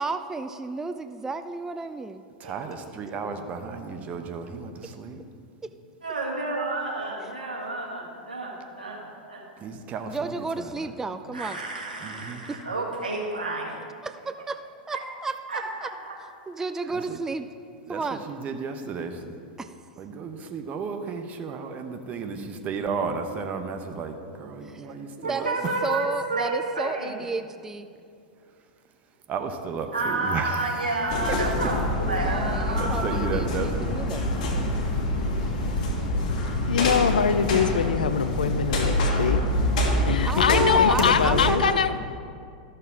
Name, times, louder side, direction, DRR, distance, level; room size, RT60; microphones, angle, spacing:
voice 1, 0.0-2.2 5.6-5.7 7.2-7.3 10.1-11.6 13.7-14.6 14.9-15.3 15.8-15.9 16.5-17.5 17.9-18.2 19.6-19.7 24.6-24.9 25.3-25.6 25.8-27.9 32.2-33.5 33.9-34.3 40.2-41.8, right 3 dB, 10° right, 9 dB, 0.3 m, -32 dB
voice 2, 2.4-5.2 9.6-11.0 12.0-12.4 16.9-17.2 17.9-19.4 20.0-25.7 29.3-31.0 31.3-31.4 32.7-33.9 35.1-35.5, right 5 dB, 35° right, 6 dB, 0.8 m, -34 dB
voice 3, 6.0-9.4 11.3-13.8 14.9-15.0 15.5-16.1 24.8-24.9 25.2-27.2 29.9-33.2, right 2 dB, 85° right, -3 dB, 1.9 m, -30 dB
sound 1, 31.1-41.5, left 1 dB, 55° left, 1.6 m, -26 dB
voice 4, 36.7-39.4 40.0-41.9, left 6 dB, 80° left, 12 dB, 0.5 m, -22 dB
13.0 x 6.7 x 3.7 m, 2.3 s
figure-of-eight pair, 95°, 4 cm